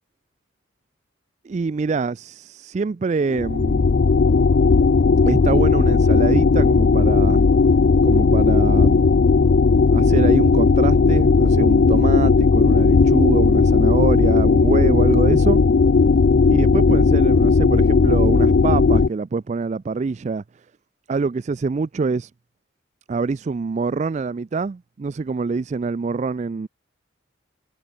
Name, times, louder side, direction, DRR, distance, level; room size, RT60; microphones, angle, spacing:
voice 1, 1.4-3.8 5.2-7.4 8.0-9.1 9.9-15.6 16.5-20.4 21.1-22.3 23.1-26.7, right 4 dB, 35° right, 0.3 m, -25 dB
sound 1, 3.2-19.1, left 4 dB, 50° left, 0.4 m, -16 dB
head